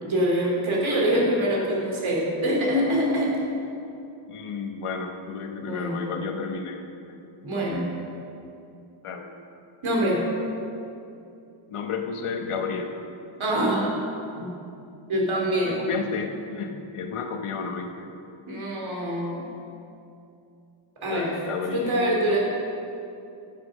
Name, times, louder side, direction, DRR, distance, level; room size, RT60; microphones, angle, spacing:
voice 1, 0.0-3.4 5.6-6.1 7.4-7.8 9.8-10.2 13.4-14.0 14.4-14.5 15.1-15.8 18.5-19.5 21.0-21.3 21.7-22.4, right 1 dB, 70° right, -2 dB, 2.8 m, -24 dB
voice 2, 0.9-1.3 4.3-6.8 9.0-9.3 11.7-13.0 15.7-18.1 21.1-22.4, left 5 dB, 85° left, 4 dB, 1.2 m, -32 dB
9.8 x 7.6 x 6.2 m, 2.7 s
wide cardioid pair, 115°, 50 cm